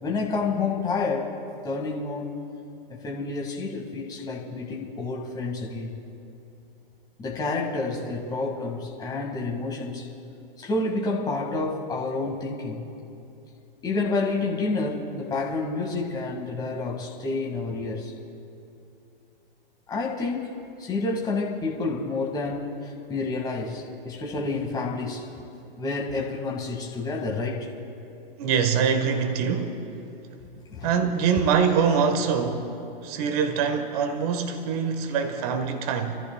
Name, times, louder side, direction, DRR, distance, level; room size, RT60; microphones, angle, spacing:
voice 1, 0.0-1.3 1.6-2.3 2.9-6.0 7.2-10.1 10.6-12.9 13.8-18.1 19.9-20.5 20.8-25.3 25.8-27.7 30.7-31.0, left 3 dB, 15° left, -1 dB, 1.9 m, -29 dB
voice 2, 28.4-29.9 30.8-32.7 33.0-36.2, right 6 dB, 40° right, 7 dB, 1.2 m, -24 dB
29.0 x 14.0 x 2.3 m, 2.7 s
hypercardioid pair, 130°, 29 cm